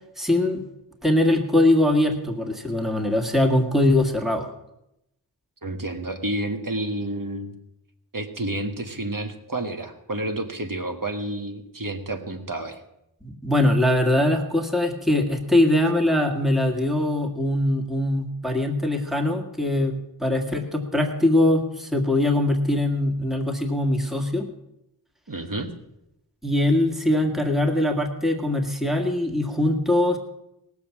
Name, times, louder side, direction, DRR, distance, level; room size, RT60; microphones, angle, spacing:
voice 1, 0.2-0.6 1.0-4.5 13.2-24.5 26.4-30.2, left 1 dB, ahead, 3 dB, 1.8 m, -22 dB
voice 2, 5.6-7.6 8.1-12.8 25.3-25.7, right 1 dB, 50° right, 6 dB, 1.6 m, -30 dB
18.5 x 7.1 x 7.2 m, 0.86 s
wide cardioid pair, 40°, 43 cm